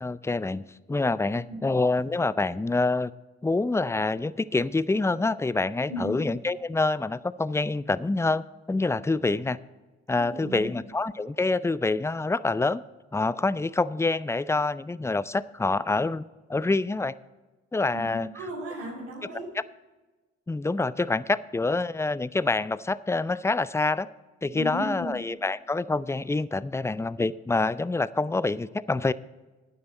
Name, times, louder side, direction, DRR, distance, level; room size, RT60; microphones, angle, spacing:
voice 1, 0.0-3.1 3.4-9.6 10.1-12.8 13.1-16.2 16.5-17.1 17.7-18.3 20.5-24.1 24.4-29.1, left 3 dB, 10° left, 18 dB, 0.4 m, -26 dB
voice 2, 10.2-10.7 17.9-19.5 24.5-25.1, right 1 dB, 90° right, -3 dB, 2.6 m, -36 dB
12.0 x 9.6 x 4.3 m, 1.2 s
hypercardioid pair, 40°, 34 cm